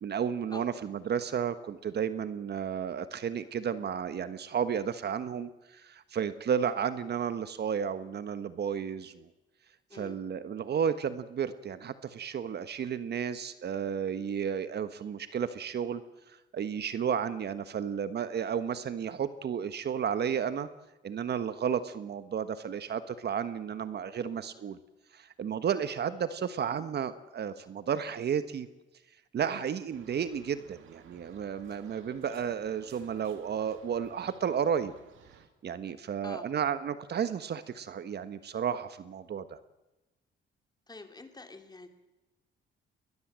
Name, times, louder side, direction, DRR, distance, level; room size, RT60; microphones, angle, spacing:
voice 1, 0.0-9.3 9.9-16.0 16.3-20.7 21.0-24.8 25.1-28.7 29.3-34.9 35.6-39.6, right 7 dB, 55° right, 12 dB, 1.3 m, -32 dB
sound 1, 29.9-35.5, right 8 dB, 80° right, 2.7 m, -57 dB
voice 2, 40.9-41.9, left 3 dB, 20° left, 6 dB, 3.0 m, -46 dB
21.0 x 20.5 x 7.6 m, 1.0 s
cardioid pair, 90°, 20 cm